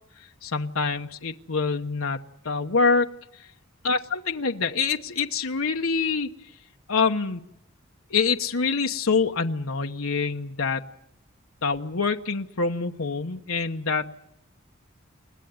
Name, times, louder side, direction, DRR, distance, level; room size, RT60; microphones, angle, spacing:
voice 1, 0.4-2.2 2.4-3.1 3.4-3.5 3.8-6.3 6.9-7.4 8.1-10.9 11.6-14.1, left 4 dB, 85° left, 3 dB, 1.1 m, -25 dB
30.0 x 15.5 x 9.5 m, 0.78 s
head